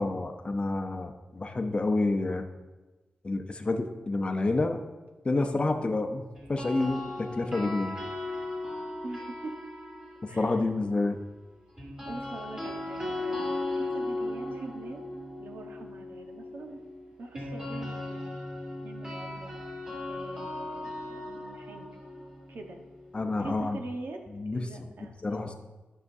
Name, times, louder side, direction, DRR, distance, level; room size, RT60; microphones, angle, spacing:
voice 1, 0.0-2.5 3.2-4.8 5.2-8.0 10.2-11.2 23.1-23.8 24.3-24.7 25.2-25.5, left 2 dB, 30° left, 6 dB, 0.7 m, -29 dB
sound 1, 6.4-10.5 11.8-23.7, left 2 dB, 25° right, 2.7 m, -37 dB
voice 2, 9.0-9.6 10.3-10.6 12.1-15.0 15.4-16.8 17.2-18.4 18.8-19.6 20.1-21.9 22.5-22.8 23.4-24.2 24.5-25.6, right 2 dB, 70° right, 3 dB, 1.0 m, -43 dB
12.0 x 5.8 x 2.7 m, 1.2 s
wide cardioid pair, 95°, 4 cm